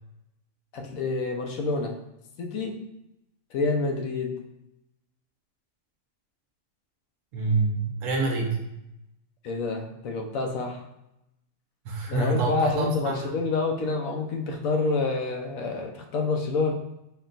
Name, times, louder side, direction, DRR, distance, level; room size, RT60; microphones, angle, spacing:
voice 1, 0.7-2.0 2.4-2.8 3.5-4.4 9.4-10.8 12.1-16.7, left 3 dB, 85° left, 3 dB, 1.1 m, -28 dB
voice 2, 7.3-8.6 11.8-13.3, right 3 dB, 75° right, 0 dB, 1.1 m, -26 dB
4.2 x 2.2 x 3.9 m, 0.87 s
omnidirectional pair, 1.4 m